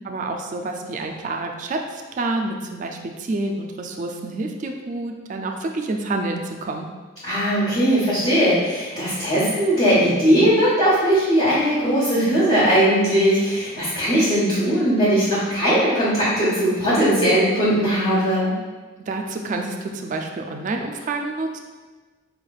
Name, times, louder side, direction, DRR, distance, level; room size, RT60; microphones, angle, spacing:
voice 1, 0.0-6.9 19.1-21.6, right 2 dB, 40° right, 3 dB, 0.3 m, -28 dB
voice 2, 7.2-18.5, equal, 30° left, -12 dB, 1.2 m, -19 dB
4.9 x 3.1 x 2.3 m, 1.3 s
head